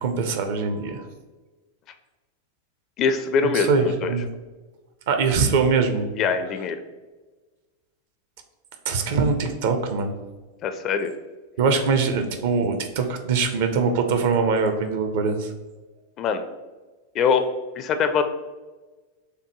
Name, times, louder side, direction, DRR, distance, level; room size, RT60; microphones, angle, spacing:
voice 1, 0.0-1.0 3.5-4.3 5.1-6.1 8.9-10.1 11.6-15.5, right 5 dB, 55° right, 6 dB, 0.6 m, -22 dB
voice 2, 3.0-4.1 6.2-6.8 10.6-11.1 16.2-16.4 17.1-17.4 17.8-18.2, left 6 dB, 35° left, 8 dB, 0.4 m, -23 dB
6.4 x 2.2 x 3.0 m, 1.2 s
figure-of-eight pair, 90°, 0 cm